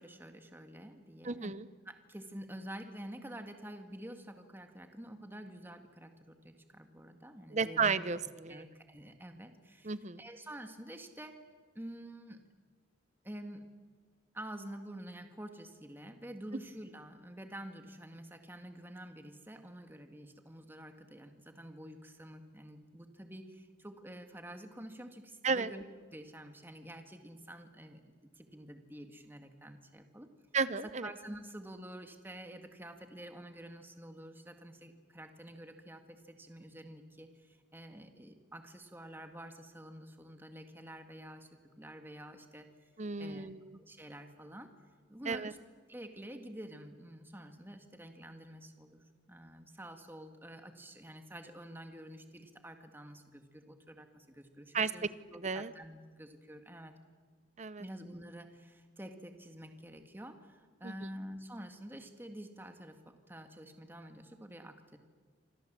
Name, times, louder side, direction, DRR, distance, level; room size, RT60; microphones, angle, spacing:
voice 1, 0.0-1.5 1.9-8.0 8.5-11.4 11.8-12.4 13.2-13.7 14.3-25.8 26.1-30.3 31.0-42.7 43.2-43.5 43.7-44.7 45.1-45.6 45.9-57.0 57.8-65.0, right 1 dB, 10° right, 5 dB, 1.9 m, -48 dB
voice 2, 1.2-1.7 7.5-8.6 9.8-10.2 25.4-25.7 30.5-31.1 43.0-43.8 45.3-45.5 54.7-54.9 55.4-55.7 57.6-57.9 60.8-60.9, right 5 dB, 40° right, 15 dB, 0.8 m, -33 dB
28.0 x 26.5 x 7.6 m, 1.5 s
head